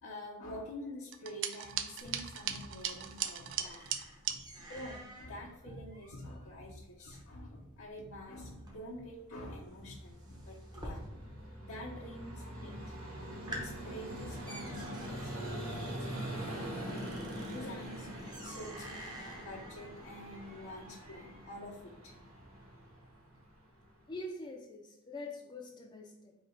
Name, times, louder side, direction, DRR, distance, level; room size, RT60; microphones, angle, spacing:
voice 1, 0.0-3.9 4.3-12.8 13.1-16.1 16.3-17.0 17.5-18.1 18.4-22.1, left 1 dB, 80° left, -5 dB, 0.8 m, -47 dB
sound 1, 1.1-4.4, right 9 dB, 60° right, 0.3 m, -38 dB
sound 2, 2.0-11.6 11.8-12.4 12.8-12.9 13.2-21.6, right 1 dB, 20° right, 0.6 m, -50 dB
Vehicle, 9.5-24.1, right 1 dB, 80° right, 1.1 m, -44 dB
voice 2, 24.1-26.4, left 2 dB, 20° left, 1 dB, 0.4 m, -44 dB
3.3 x 2.8 x 4.4 m, 0.88 s
head